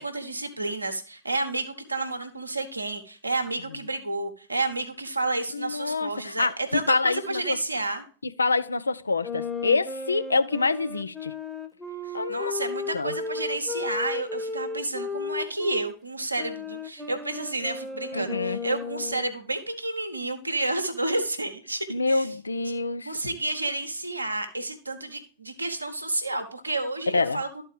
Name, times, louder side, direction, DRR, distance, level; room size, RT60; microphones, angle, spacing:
voice 1, 0.0-8.0 12.1-22.3 23.0-27.6, right 2 dB, 85° right, 1.1 m, -30 dB
voice 2, 5.5-6.5 6.9-7.6 8.4-11.3 12.1-12.5 12.9-13.1 18.1-18.6 21.9-23.1 27.1-27.4, left 3 dB, 80° left, 0.4 m, -26 dB
sound 1, 9.2-15.9 16.4-19.3, left 3 dB, 10° left, 1.0 m, -34 dB
12.5 x 4.2 x 3.3 m
figure-of-eight pair, 90°, 0 cm